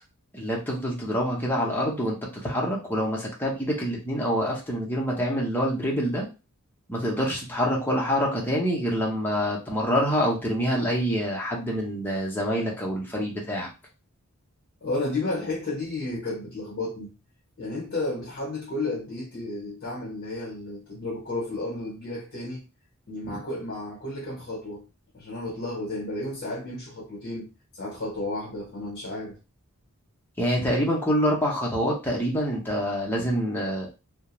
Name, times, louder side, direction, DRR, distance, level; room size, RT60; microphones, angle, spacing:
voice 1, 0.3-6.3 6.9-13.7 30.4-33.9, equal, 10° left, 0.7 m, -26 dB
voice 2, 14.8-17.1 17.6-22.6 23.1-24.8 25.1-29.4, left 2 dB, 50° left, 0.8 m, -32 dB
2.4 x 2.1 x 2.9 m
head